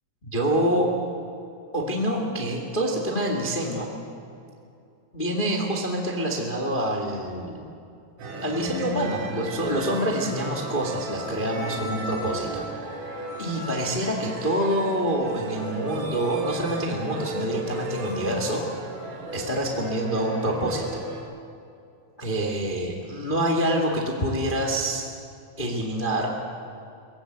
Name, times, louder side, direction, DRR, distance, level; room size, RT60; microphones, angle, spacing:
voice 1, 0.2-0.9 1.7-3.9 5.1-7.7 8.4-12.7 13.4-18.6 19.3-21.0 22.2-25.0 25.6-26.3, right 1 dB, 35° left, 1 dB, 0.7 m, -26 dB
sound 1, 8.2-21.2, right 1 dB, 75° right, 5.4 m, -35 dB
23.5 x 18.0 x 8.0 m, 2.5 s
omnidirectional pair, 5.2 m